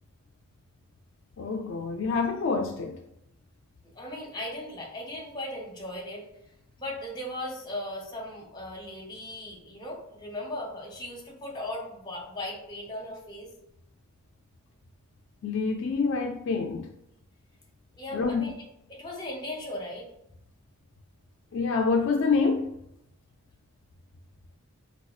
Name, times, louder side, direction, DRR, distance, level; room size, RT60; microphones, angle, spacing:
voice 1, 1.4-3.0 15.4-16.9 18.1-18.5 21.5-22.8, left 4 dB, 60° left, 0.3 m, -27 dB
voice 2, 3.9-6.3 6.8-13.5 18.0-18.5 18.9-20.1, left 1 dB, 20° left, 0.7 m, -37 dB
4.8 x 2.3 x 2.3 m
head